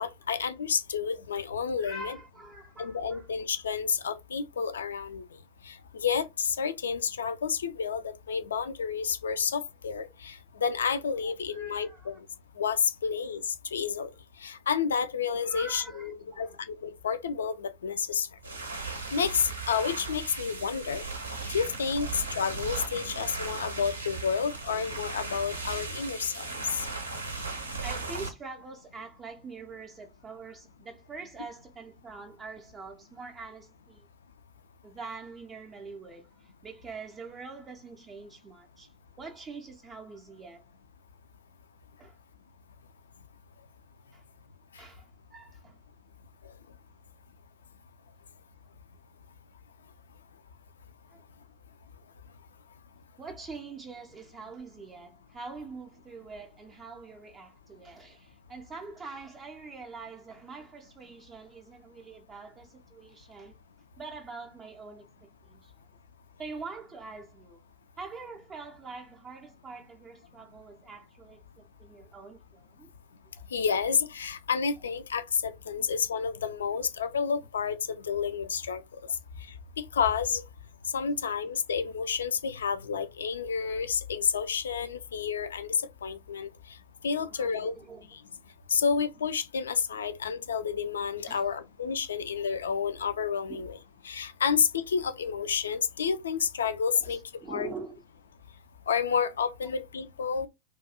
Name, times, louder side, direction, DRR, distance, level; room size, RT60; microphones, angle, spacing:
voice 1, 0.0-2.1 2.8-5.2 5.7-12.2 12.6-14.1 14.4-18.3 19.1-21.1 21.5-26.8 73.5-78.8 79.9-80.4 80.9-85.7 86.0-86.5 87.0-87.7 88.1-88.2 88.7-93.8 94.0-97.2 97.5-97.7 98.9-100.5, left 6 dB, 65° left, 0.3 m, -30 dB
voice 2, 1.8-3.3 11.2-12.2 15.5-16.6 27.8-34.1 34.8-38.9 39.2-40.6 42.0-42.2 44.1-44.2 44.8-45.8 51.1-51.2 53.2-63.5 64.0-65.8 66.4-67.6 68.0-72.9 73.4-73.5 75.8-75.9 87.1-88.1 91.3-91.4 93.5-93.7 97.0-98.0, right 4 dB, 20° right, 0.4 m, -45 dB
sound 1, 18.4-28.3, right 3 dB, 80° right, 0.5 m, -37 dB
2.3 x 2.2 x 2.7 m
figure-of-eight pair, 90°, 0 cm